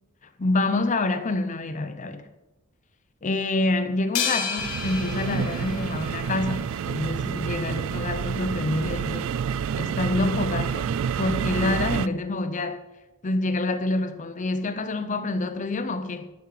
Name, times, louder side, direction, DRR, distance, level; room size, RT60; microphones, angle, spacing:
voice 1, 0.4-2.3 3.2-9.3 9.8-10.9 11.2-12.8 13.2-16.3, left 2 dB, 35° left, 0.6 m, -27 dB
sound 1, 4.2-6.6, left 6 dB, 70° left, 1.5 m, -31 dB
sound 2, 4.6-12.1, right 7 dB, 65° right, 0.3 m, -29 dB
12.0 x 7.2 x 4.9 m
head